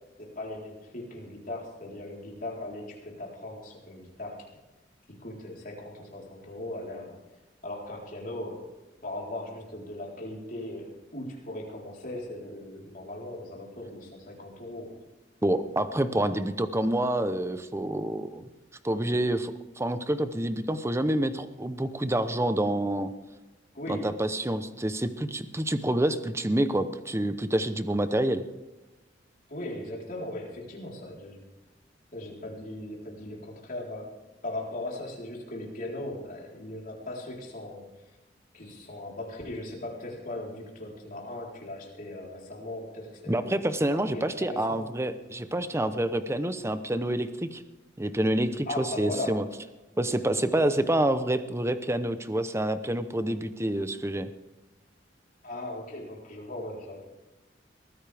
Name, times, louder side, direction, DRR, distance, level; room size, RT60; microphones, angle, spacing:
voice 1, 0.2-4.5 5.2-7.2 7.6-8.6 9.0-14.9 23.7-24.1 29.5-31.4 32.1-34.1 34.4-37.9 38.5-43.5 43.9-44.8 48.7-49.4 55.4-57.0, left 1 dB, 50° left, -2 dB, 4.0 m, -38 dB
voice 2, 15.4-18.4 18.8-23.1 23.9-28.4 43.3-47.6 48.0-49.4 50.0-54.3, right 1 dB, 15° right, 11 dB, 0.8 m, -27 dB
22.0 x 15.0 x 3.5 m, 1.1 s
head